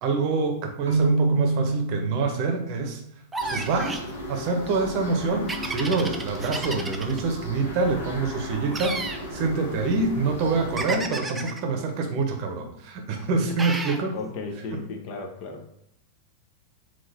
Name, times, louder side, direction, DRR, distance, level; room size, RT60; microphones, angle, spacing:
voice 1, 0.0-3.0 3.5-4.0 4.3-14.2 14.7-14.8, right 4 dB, 45° right, 4 dB, 0.7 m, -26 dB
Keyboard (musical), 0.9-2.7, right 2 dB, 70° right, 0.4 m, -25 dB
sound 1, 3.3-4.1 5.5-7.2 8.7-9.2 10.8-11.6 13.6-14.0, right 3 dB, 10° right, 0.4 m, -32 dB
sound 2, 3.4-11.0, equal, 65° left, 1.0 m, -36 dB
voice 2, 14.1-15.6, left 4 dB, 45° left, 3 dB, 0.6 m, -35 dB
3.8 x 2.4 x 4.2 m, 0.74 s
figure-of-eight pair, 90°, 0 cm